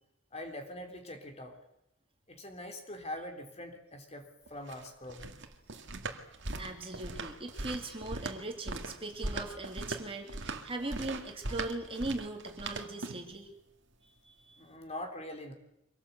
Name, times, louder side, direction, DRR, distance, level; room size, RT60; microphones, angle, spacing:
voice 1, 0.3-1.6 2.3-5.3 6.5-6.7 9.3-9.4 14.6-15.5, left 1 dB, 30° left, 5 dB, 3.5 m, -43 dB
sound 1, 4.5-13.4, right 2 dB, 60° right, 2.2 m, -40 dB
voice 2, 6.6-13.5 14.2-14.8, right 2 dB, 25° right, 3 dB, 2.7 m, -40 dB
25.0 x 18.0 x 8.3 m, 0.84 s
head